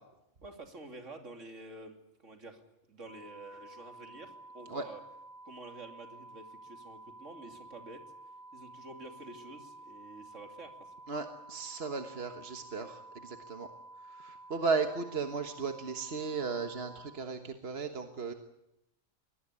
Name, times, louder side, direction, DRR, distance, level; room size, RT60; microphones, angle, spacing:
voice 1, 0.4-1.9 2.2-2.6 2.9-5.0 5.4-8.0 8.5-10.9, right 2 dB, 70° right, 4 dB, 3.3 m, -49 dB
sound 1, 3.0-17.1, right 2 dB, 55° left, 6.4 m, -51 dB
voice 2, 11.1-13.7 14.1-18.3, right 4 dB, 50° right, 6 dB, 1.6 m, -35 dB
24.0 x 19.0 x 9.9 m, 0.87 s
omnidirectional pair, 1.3 m